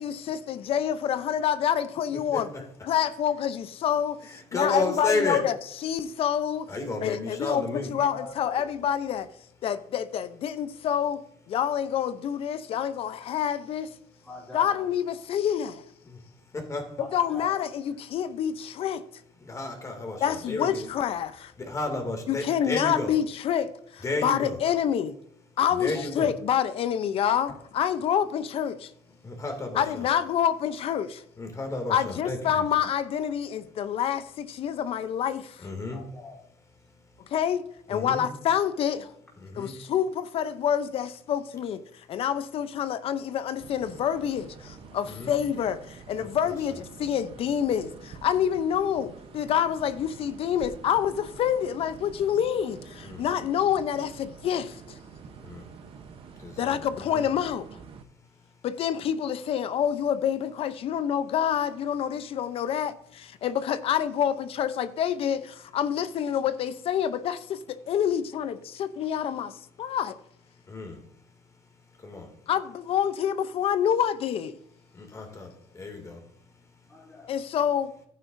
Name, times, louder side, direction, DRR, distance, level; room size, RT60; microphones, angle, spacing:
voice 1, 0.0-2.5 2.8-5.6 5.8-6.7 7.0-9.3 9.6-13.9 14.5-15.8 17.0-19.0 20.2-21.5 22.3-25.2 25.6-28.9 29.7-31.2 31.9-35.7 37.3-39.1 39.6-54.8 56.6-57.7 58.6-70.1 72.5-74.6 77.3-77.9, left 9 dB, 60° left, 0.7 m, -27 dB
voice 2, 2.3-2.6 4.2-5.4 6.7-7.9 16.5-16.8 19.5-20.9 21.6-23.1 24.0-24.6 25.7-26.3 29.2-30.1 31.4-32.6 35.6-36.0 37.9-38.2 39.4-39.7 45.1-45.3 46.2-46.3 53.0-53.2 55.4-55.6 56.4-57.2 70.7-71.0 72.0-72.3 75.0-75.5 75.7-76.2, left 2 dB, 30° left, 2.4 m, -32 dB
voice 3, 8.0-8.3 14.2-14.7 17.0-17.5 20.1-20.2 35.9-36.4 76.9-77.3, left 3 dB, 5° left, 3.5 m, -43 dB
sound 1, 43.6-58.0, right 6 dB, 50° right, 0.9 m, -47 dB
11.0 x 9.6 x 2.6 m
cardioid pair, 95°, 11 cm